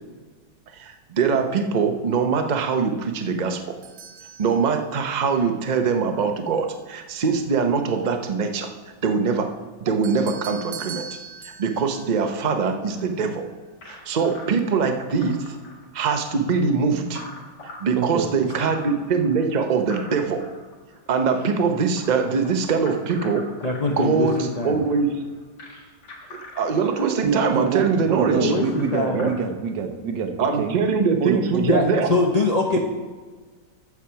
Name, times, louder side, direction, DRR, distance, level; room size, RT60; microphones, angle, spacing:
voice 1, 0.7-3.8 4.4-8.7 9.0-9.5 9.8-11.1 11.6-13.4 13.9-15.5 15.9-17.2 17.8-20.4 21.1-23.4 23.8-25.2 26.3-28.5 29.1-29.3 30.4-32.1, right 5 dB, 40° right, 5 dB, 0.6 m, -23 dB
sound 1, 3.8-5.2 10.0-13.3, right 6 dB, 60° right, 1.2 m, -41 dB
sound 2, 13.8-29.4, left 2 dB, 75° left, 2.2 m, -44 dB
voice 2, 18.0-18.5 27.2-30.8 31.2-31.8 32.7-32.8, right 6 dB, 90° right, 6 dB, 1.6 m, -26 dB
voice 3, 23.6-24.8 28.3-29.3 31.6-32.8, left 2 dB, 50° left, 0 dB, 0.4 m, -23 dB
14.0 x 4.8 x 5.7 m, 1.4 s
omnidirectional pair, 1.9 m